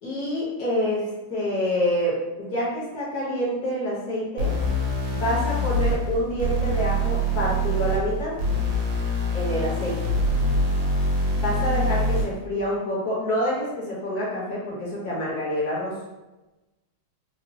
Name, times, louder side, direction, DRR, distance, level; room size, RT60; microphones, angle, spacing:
voice 1, 0.0-4.5 5.1-8.4 9.3-10.0 11.4-15.9, equal, 55° left, -6 dB, 1.3 m, -27 dB
sound 1, 4.4-12.4, equal, 80° right, 1.6 m, -24 dB
4.1 x 2.0 x 2.7 m, 1.1 s
omnidirectional pair, 2.4 m